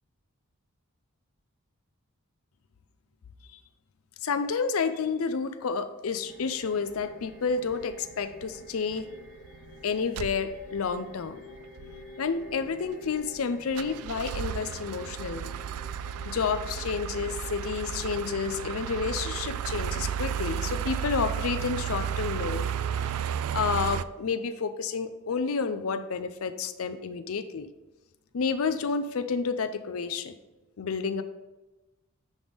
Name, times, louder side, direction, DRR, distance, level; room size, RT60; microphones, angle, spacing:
voice 1, 4.2-9.1 9.8-11.4 12.2-15.5 16.2-27.7 28.3-30.3 30.8-31.2, left 5 dB, 75° left, 10 dB, 0.5 m, -30 dB
sound 1, 6.2-20.7, left 1 dB, 60° right, 1.3 m, -48 dB
sound 2, 7.7-8.0 8.4-8.6 8.9-9.0 9.3-9.7 10.2-10.9 11.3-11.4 11.6-12.1 12.5-13.4 13.7-24.0, right 8 dB, 85° right, 0.3 m, -33 dB
10.0 x 3.6 x 5.1 m, 1.1 s
head